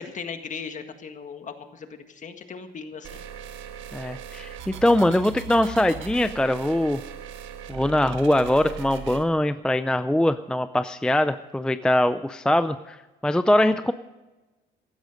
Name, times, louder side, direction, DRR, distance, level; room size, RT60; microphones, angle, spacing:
voice 1, 0.0-3.2, left 5 dB, 40° left, 7 dB, 1.7 m, -38 dB
sound 1, 3.0-9.2, right 8 dB, 85° right, 1.5 m, -39 dB
voice 2, 3.9-7.0 7.7-13.0 13.2-13.9, left 1 dB, 5° left, 11 dB, 0.5 m, -22 dB
16.0 x 12.5 x 5.1 m, 1.1 s
cardioid pair, 120°, 19 cm